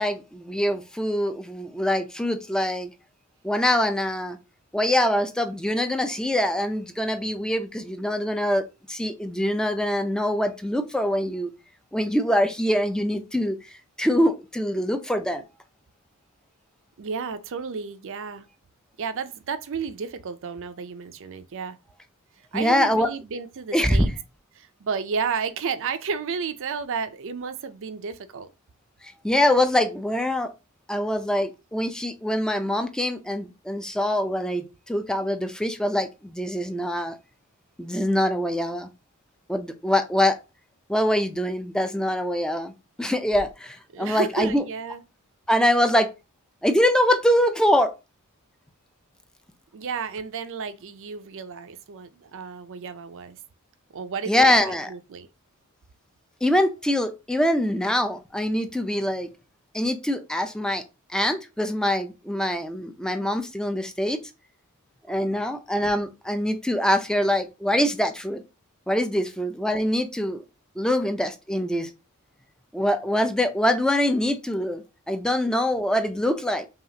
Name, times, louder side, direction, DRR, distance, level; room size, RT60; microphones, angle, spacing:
voice 1, 0.0-2.9 3.4-4.4 4.7-11.5 11.9-13.6 14.0-15.4 22.5-23.1 23.7-24.1 29.0-30.5 30.9-37.2 37.8-38.9 39.5-40.4 40.9-42.7 43.0-44.6 45.5-46.1 46.6-47.9 54.3-54.9 56.4-59.3 59.7-60.8 61.1-64.2 65.1-68.4 68.9-70.4 70.8-71.9 72.7-76.7, left 1 dB, 5° left, 0.4 m, -24 dB
voice 2, 17.0-18.5 19.0-21.8 22.5-24.1 24.5-28.5 43.9-45.0 49.7-53.4 53.9-55.3, right 5 dB, 60° right, 0.5 m, -32 dB
5.7 x 2.4 x 2.8 m
head